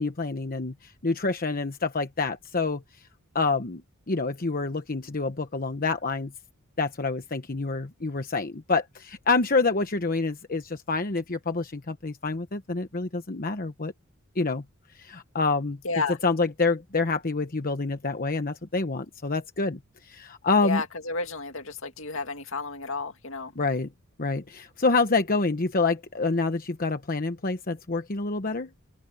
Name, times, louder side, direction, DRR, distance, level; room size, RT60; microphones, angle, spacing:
voice 1, 0.0-2.8 3.3-3.8 4.1-6.3 6.8-13.9 14.4-14.6 14.9-15.8 16.2-20.8 23.6-23.9 24.2-28.7, left 3 dB, 45° left, 1.1 m, -27 dB
voice 2, 15.8-16.2 20.6-23.5, left 4 dB, 65° left, 2.4 m, -32 dB
open air
head